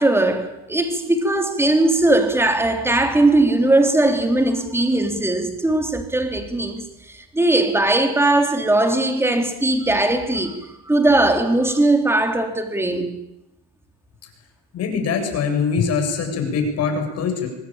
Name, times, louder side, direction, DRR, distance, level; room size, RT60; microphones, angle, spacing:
voice 1, 0.0-13.1, right 2 dB, 10° right, 3.4 m, -19 dB
voice 2, 14.7-17.5, left 5 dB, 55° left, 7.5 m, -23 dB
25.0 x 19.5 x 9.0 m
cardioid pair, 130°, 29 cm